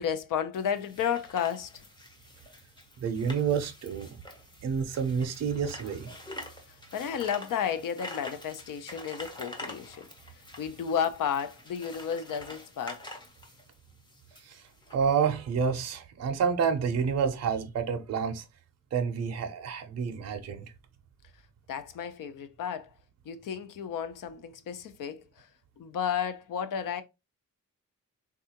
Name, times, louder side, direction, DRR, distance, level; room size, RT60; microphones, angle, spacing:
voice 1, 0.0-1.8 6.7-10.1 10.6-13.1 21.7-22.9 23.3-25.5 25.8-27.0, left 8 dB, 70° left, 0.5 m, -32 dB
sound 1, 0.5-15.0, left 1 dB, 15° left, 0.5 m, -46 dB
voice 2, 3.0-4.1 4.6-6.1 14.4-14.6 14.9-18.4 18.9-20.7, right 6 dB, 50° right, 0.5 m, -29 dB
3.5 x 2.4 x 2.8 m
wide cardioid pair, 150°, 33 cm